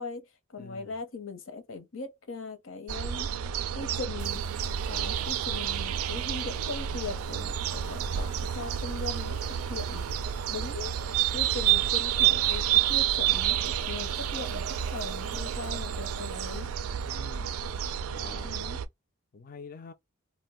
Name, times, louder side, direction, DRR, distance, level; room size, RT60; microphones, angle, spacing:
voice 1, 0.0-3.3 3.7-4.4 4.9-10.0 10.5-10.9 11.3-16.7 18.4-18.8, left 4 dB, 70° left, 0.8 m, -39 dB
voice 2, 0.6-1.0 17.0-17.6 18.1-18.6 19.3-19.9, left 4 dB, 40° left, 0.3 m, -46 dB
sound 1, 2.9-18.9, right 10 dB, 85° right, 0.3 m, -29 dB
sound 2, 4.2-18.4, right 4 dB, 35° right, 0.5 m, -50 dB
2.5 x 2.1 x 3.4 m
head